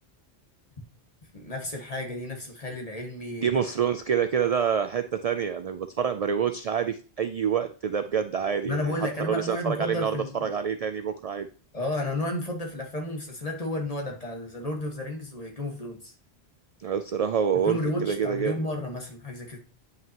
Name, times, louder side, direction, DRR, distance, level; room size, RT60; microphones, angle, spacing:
voice 1, 1.3-3.5 8.6-10.5 11.7-16.1 17.5-19.6, left 1 dB, 40° left, 1 dB, 1.6 m, -32 dB
voice 2, 3.4-11.5 16.8-18.7, right 7 dB, 55° right, 9 dB, 0.4 m, -27 dB
9.2 x 5.6 x 2.9 m, 0.37 s
omnidirectional pair, 1.0 m